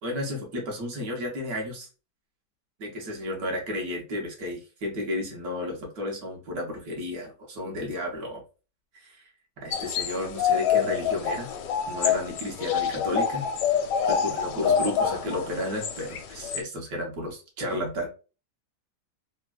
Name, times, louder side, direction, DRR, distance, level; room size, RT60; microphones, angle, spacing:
voice 1, 0.0-1.9 2.8-8.4 8.9-9.3 9.6-11.5 11.9-13.5 14.1-18.1, left 1 dB, 65° right, 0 dB, 1.2 m, -32 dB
sound 1, 9.7-16.6, left 7 dB, 80° left, 1.2 m, -27 dB
3.4 x 2.1 x 2.3 m, 0.33 s
omnidirectional pair, 1.9 m